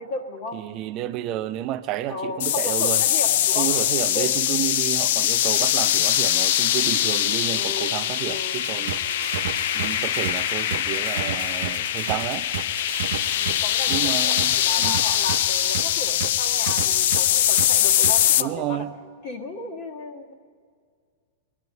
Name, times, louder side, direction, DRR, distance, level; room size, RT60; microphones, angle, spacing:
voice 1, 0.0-0.6 2.1-3.7 4.1-4.3 7.5-7.9 8.2-8.6 13.3-18.9 19.2-20.3, left 2 dB, 40° left, 1.5 m, -34 dB
voice 2, 0.5-3.0 3.6-9.0 9.7-12.5 13.9-15.0 18.4-18.9, right 13 dB, 30° right, 0.5 m, -30 dB
sound 1, 2.4-18.4, left 12 dB, 55° left, 0.4 m, -22 dB
Wind instrument woodwind instrument, 6.7-11.9, equal, 75° left, 3.0 m, -46 dB
sound 2, 8.5-18.3, right 10 dB, 80° right, 0.7 m, -32 dB
22.0 x 10.5 x 5.4 m
supercardioid pair, 165°, 0 cm